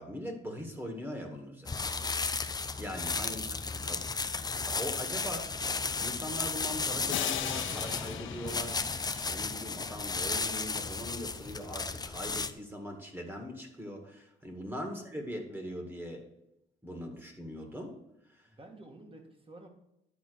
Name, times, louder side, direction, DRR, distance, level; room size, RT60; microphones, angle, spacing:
voice 1, 0.0-1.9 2.7-4.1 4.5-16.3 16.8-18.0 18.3-18.5, equal, 10° right, 3 dB, 2.0 m, -41 dB
sound 1, 1.7-12.5, left 4 dB, 20° left, 0.6 m, -34 dB
voice 2, 3.8-4.1 18.5-19.7, right 2 dB, 25° right, 4 dB, 1.9 m, -52 dB
sound 2, 7.1-9.8, left 10 dB, 80° left, 0.7 m, -38 dB
11.0 x 4.1 x 6.3 m, 0.82 s
cardioid pair, 90°, 20 cm